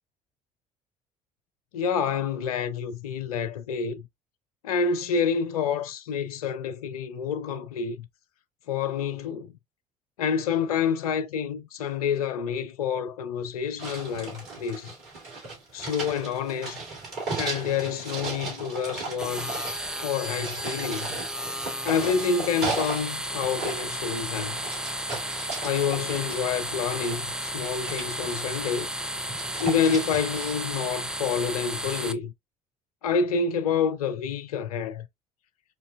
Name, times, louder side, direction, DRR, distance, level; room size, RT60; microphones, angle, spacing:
voice 1, 1.7-4.1 4.6-8.1 8.7-9.5 10.2-14.9 15.7-16.8 17.4-19.7 20.0-21.2 21.8-24.6 25.6-28.9 29.6-32.3 33.0-35.1, left 6 dB, 75° left, 0.4 m, -28 dB
frantic searching, 13.8-23.1 23.4-27.2 27.6-28.8 29.1-30.5, right 3 dB, 60° right, 2.3 m, -36 dB
sound 1, 19.2-32.1, equal, 5° right, 0.4 m, -33 dB
4.5 x 2.6 x 2.2 m
figure-of-eight pair, 60°, 19 cm